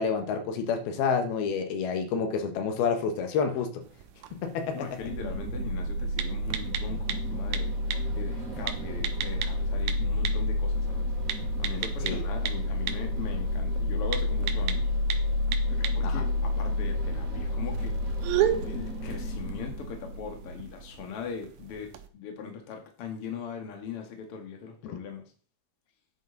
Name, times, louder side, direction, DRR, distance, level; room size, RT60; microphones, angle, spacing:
voice 1, 0.0-3.9 4.3-5.0 12.0-12.2 16.0-16.3 24.8-25.0, left 6 dB, 85° left, 6 dB, 3.3 m, -29 dB
sound 1, 3.8-22.1, right 11 dB, 70° right, 1.9 m, -37 dB
voice 2, 4.7-7.7 8.2-14.9 15.7-17.9 18.6-25.3, left 6 dB, 45° left, 4 dB, 2.4 m, -40 dB
sound 2, 5.0-20.9, left 1 dB, 45° right, 4.3 m, -30 dB
10.5 x 9.0 x 4.0 m, 0.41 s
omnidirectional pair, 4.3 m